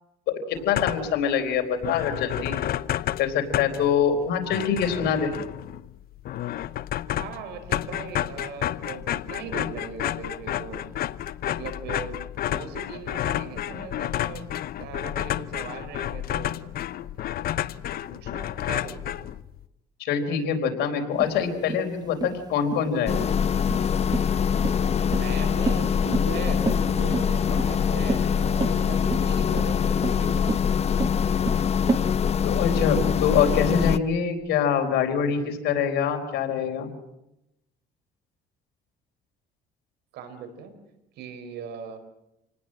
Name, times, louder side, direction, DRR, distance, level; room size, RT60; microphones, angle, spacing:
voice 1, 0.3-2.6 3.2-5.3 20.0-23.3 32.4-36.9, left 7 dB, 80° left, 5 dB, 4.2 m, -24 dB
sound 1, 0.5-1.2 1.6-1.7 1.8-19.7, left 12 dB, 65° left, 0.8 m, -31 dB
voice 2, 7.1-10.8 11.4-12.1 12.4-14.5 14.8-16.6 17.9-19.3 25.0-30.4 40.1-40.7 41.2-42.0, right 6 dB, 80° right, 9 dB, 4.6 m, -39 dB
sound 2, 21.2-32.0, right 4 dB, 25° right, 1.1 m, -31 dB
sound 3, 23.1-34.0, left 7 dB, 40° left, 0.8 m, -24 dB
27.5 x 19.0 x 7.7 m, 0.88 s
cardioid pair, 110°, 17 cm